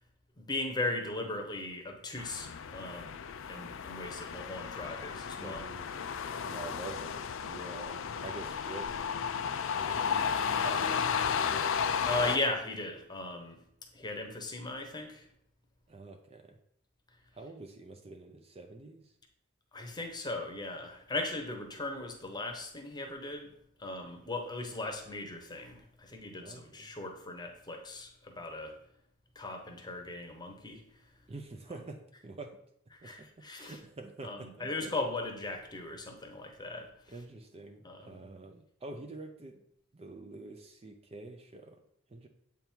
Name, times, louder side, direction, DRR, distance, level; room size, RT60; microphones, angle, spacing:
voice 1, 0.4-3.2 3.5-5.6 12.1-13.6 13.9-15.2 19.7-23.5 23.8-28.7 29.4-30.8 33.0-33.8 34.2-36.9 37.8-38.1, left 2 dB, 20° left, 4 dB, 0.9 m, -38 dB
sound 1, 2.2-12.4, left 7 dB, 65° left, 0.4 m, -33 dB
voice 2, 5.4-5.9 6.4-11.6 15.9-16.6 17.3-19.1 26.4-26.9 31.3-32.6 33.0-33.3 33.6-35.0 37.1-39.6 39.9-41.8 42.1-42.3, right 3 dB, 30° right, 4 dB, 0.5 m, -47 dB
7.8 x 3.6 x 4.5 m, 0.71 s
head